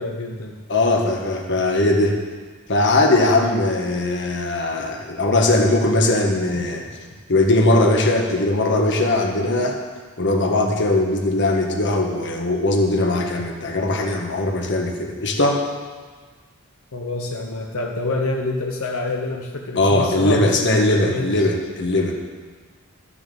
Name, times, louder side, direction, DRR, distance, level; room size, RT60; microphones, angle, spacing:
voice 1, 0.0-0.6 16.9-21.5, left 2 dB, 85° left, 1 dB, 1.0 m, -27 dB
voice 2, 0.7-2.2 2.7-6.9 7.3-9.8 10.2-15.6 19.7-22.2, left 2 dB, 55° left, 2 dB, 1.5 m, -19 dB
12.5 x 6.9 x 7.1 m, 1.5 s
head